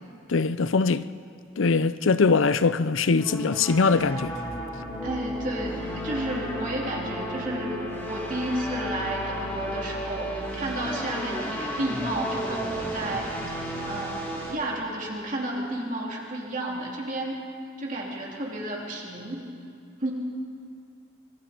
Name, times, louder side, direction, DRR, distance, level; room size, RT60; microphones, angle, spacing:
voice 1, 0.3-1.1 1.6-4.3, left 4 dB, 75° left, 0.6 m, -22 dB
sound 1, 3.2-14.5, equal, 15° left, 4.5 m, -33 dB
voice 2, 5.0-13.3 13.9-17.4 17.8-19.4 20.0-20.1, right 1 dB, 40° right, 3.3 m, -32 dB
25.5 x 23.0 x 4.5 m
head